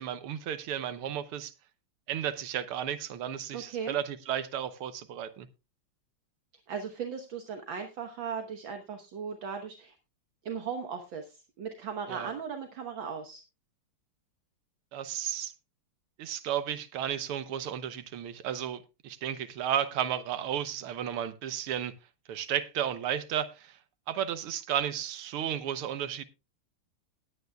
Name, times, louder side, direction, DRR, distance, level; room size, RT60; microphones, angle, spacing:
voice 1, 0.0-1.5 2.1-5.5 12.1-12.3 14.9-15.5 16.2-21.9 22.3-23.7 24.1-26.2, right 10 dB, 85° right, 1.8 m, -33 dB
voice 2, 3.5-4.0 6.7-10.0 10.5-13.4, right 6 dB, 65° right, 1.9 m, -37 dB
19.0 x 9.2 x 2.3 m
omnidirectional pair, 2.4 m